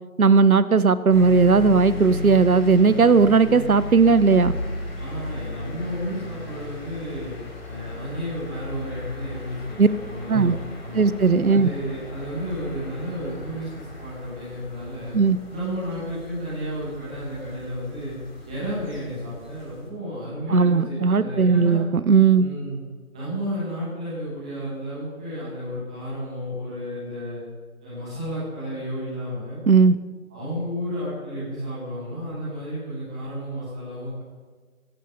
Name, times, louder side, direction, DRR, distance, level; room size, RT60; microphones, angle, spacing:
voice 1, 0.2-4.6 9.8-9.9 10.3-10.5 10.9-11.7 15.1-15.4 20.5-22.4 29.7-30.0, right 5 dB, 80° right, 15 dB, 0.9 m, -17 dB
sound 1, 1.1-19.9, left 2 dB, 45° left, 4.1 m, -36 dB
voice 2, 5.0-7.3 7.6-11.0 11.5-15.1 15.5-18.1 18.4-21.8 22.3-22.8 23.1-27.4 27.8-29.6 30.3-34.2, equal, 5° right, -10 dB, 2.1 m, -32 dB
16.5 x 15.0 x 5.6 m, 1.4 s
figure-of-eight pair, 175°, 42 cm